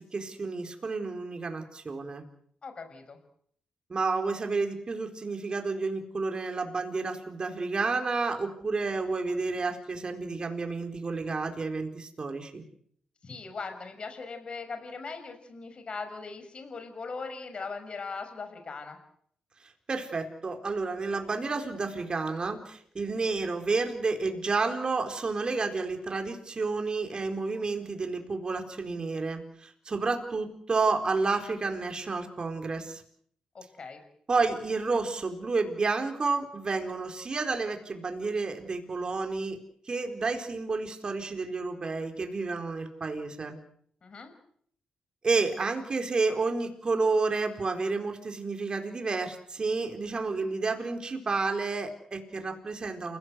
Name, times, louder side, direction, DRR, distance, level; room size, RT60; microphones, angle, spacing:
voice 1, 0.1-2.2 3.9-12.6 19.6-33.0 34.3-39.6 39.9-43.6 45.2-53.2, right 3 dB, 35° right, 5 dB, 4.2 m, -30 dB
voice 2, 2.6-3.2 13.2-19.0 33.5-34.0 44.0-44.3, left 4 dB, 40° left, 7 dB, 6.1 m, -39 dB
29.0 x 17.5 x 8.2 m, 0.65 s
cardioid pair, 110°, 3 cm